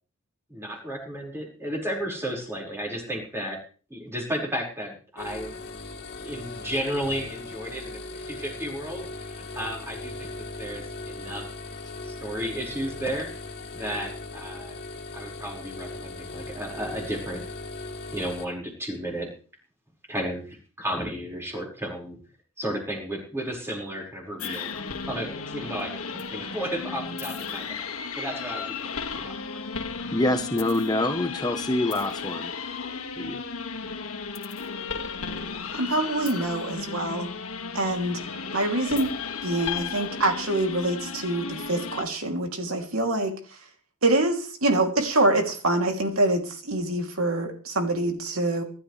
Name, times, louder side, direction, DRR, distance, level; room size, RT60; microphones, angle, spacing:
voice 1, 0.5-3.6 3.9-5.5 6.2-11.5 12.0-13.4 13.7-14.8 15.1-17.4 18.1-19.3 20.1-22.2 22.6-24.7 25.1-27.8 28.2-29.3, equal, 10° right, -1 dB, 5.3 m, -33 dB
sound 1, 5.2-18.4, left 2 dB, 50° left, 2.6 m, -38 dB
sound 2, 24.4-42.0, left 5 dB, 75° left, 2.1 m, -34 dB
voice 2, 30.1-32.5 33.2-33.4, left 1 dB, 20° left, 6 dB, 1.1 m, -26 dB
voice 3, 35.8-37.3 37.7-38.2 38.5-39.1 39.4-43.4 44.0-48.6, right 2 dB, 70° right, 3 dB, 3.0 m, -25 dB
25.5 x 12.5 x 3.4 m, 0.39 s
head